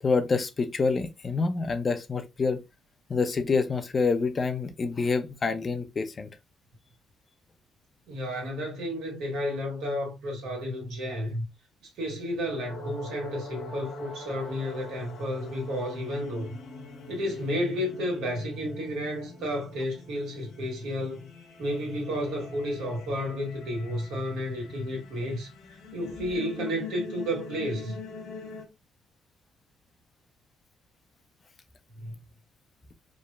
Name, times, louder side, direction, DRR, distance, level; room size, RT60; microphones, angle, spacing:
voice 1, 0.0-2.6 3.1-6.3, left 4 dB, 35° left, 0.4 m, -27 dB
voice 2, 8.1-11.4 11.8-16.6 17.1-21.3 21.6-25.5 25.9-28.0 31.9-32.1, equal, 85° right, 1.4 m, -32 dB
sound 1, 12.7-28.7, left 4 dB, 70° left, 0.7 m, -44 dB
3.0 x 2.0 x 2.3 m
cardioid pair, 90°, 0 cm